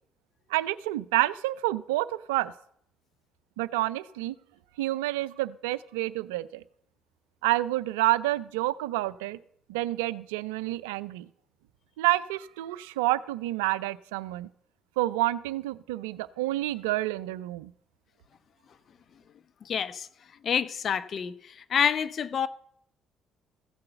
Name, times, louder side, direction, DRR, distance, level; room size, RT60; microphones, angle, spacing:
voice 1, 0.5-2.5 3.6-4.3 4.8-6.6 7.4-9.4 9.7-11.3 12.0-14.5 15.0-17.7, right 17 dB, 80° right, 0.4 m, -28 dB
voice 2, 19.7-20.1 20.4-21.3 21.7-22.5, left 7 dB, 55° left, 0.7 m, -27 dB
15.0 x 6.7 x 6.9 m
hypercardioid pair, 50°, 0 cm